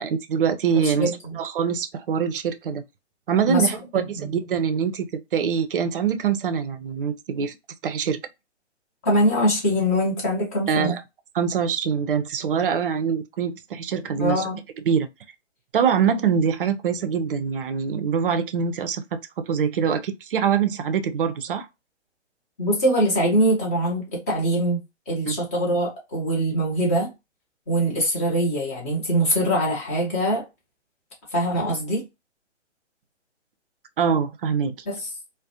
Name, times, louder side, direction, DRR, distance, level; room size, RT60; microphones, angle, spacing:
voice 1, 0.0-2.8 3.3-7.6 7.8-8.2 10.7-11.0 11.3-14.5 14.9-15.1 15.7-19.0 19.5-21.7 25.3-25.4 34.0-34.7, right 7 dB, 50° right, 0.4 m, -24 dB
voice 2, 0.8-1.4 3.5-3.7 3.9-4.3 9.0-11.0 14.2-14.6 22.6-24.8 25.1-27.1 27.7-30.4 31.3-32.0 34.9-35.1, equal, 15° left, 0.4 m, -23 dB
2.3 x 2.0 x 2.6 m
figure-of-eight pair, 135°, 36 cm